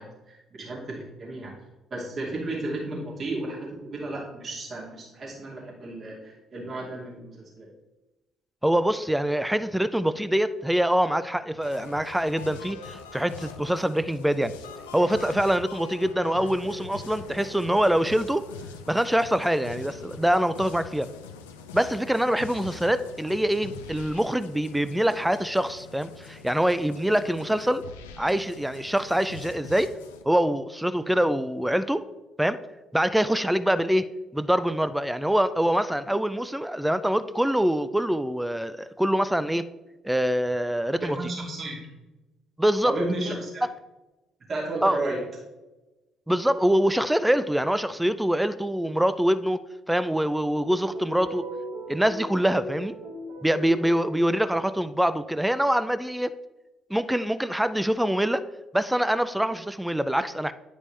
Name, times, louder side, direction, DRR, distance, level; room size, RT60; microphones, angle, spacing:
voice 1, 0.0-1.5 1.9-7.7 41.0-41.9 42.8-43.6 44.5-45.2, right 2 dB, 45° right, -4 dB, 2.5 m, -33 dB
voice 2, 8.6-14.5 14.9-18.4 18.9-21.1 21.7-27.8 28.2-29.9 30.3-32.0 32.4-32.6 32.9-34.0 34.3-39.7 40.0-41.2 42.6-42.9 44.8-45.0 46.3-49.6 49.9-51.4 51.9-53.0 53.4-56.3 56.9-58.4 58.7-60.5, equal, 5° right, 13 dB, 0.4 m, -24 dB
sound 1, 11.6-30.2, left 5 dB, 90° left, 0.5 m, -43 dB
sound 2, 50.5-54.7, right 1 dB, 75° right, 2.5 m, -39 dB
9.6 x 5.2 x 3.3 m, 1.1 s
hypercardioid pair, 55°, 0 cm